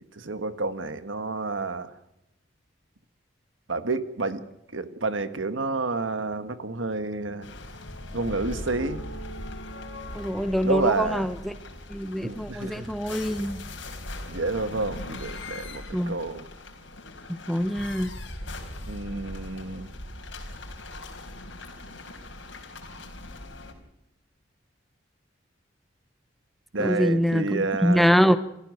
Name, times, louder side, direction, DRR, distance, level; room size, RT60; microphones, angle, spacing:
voice 1, 0.2-1.9 3.7-4.4 4.7-7.5 8.1-9.0 10.6-11.3 12.2-12.9 14.3-16.5 18.9-19.9 26.7-28.1, right 3 dB, 90° right, 11 dB, 1.5 m, -29 dB
sound 1, 7.4-23.7, left 1 dB, 75° left, 4.0 m, -40 dB
voice 2, 10.1-11.5 11.9-13.6 15.9-16.2 17.5-18.1 26.8-28.4, equal, ahead, 11 dB, 1.0 m, -24 dB
28.0 x 15.0 x 6.5 m, 0.84 s
head